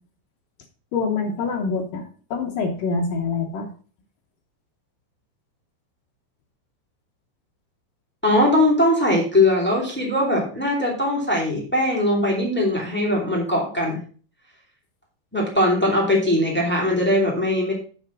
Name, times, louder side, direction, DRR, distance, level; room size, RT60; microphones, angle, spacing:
voice 1, 0.9-3.7, left 4 dB, 80° left, 1 dB, 1.9 m, -25 dB
voice 2, 8.2-14.0 15.3-17.7, left 1 dB, 10° left, -3 dB, 0.7 m, -20 dB
8.1 x 5.8 x 6.0 m, 0.41 s
omnidirectional pair, 5.4 m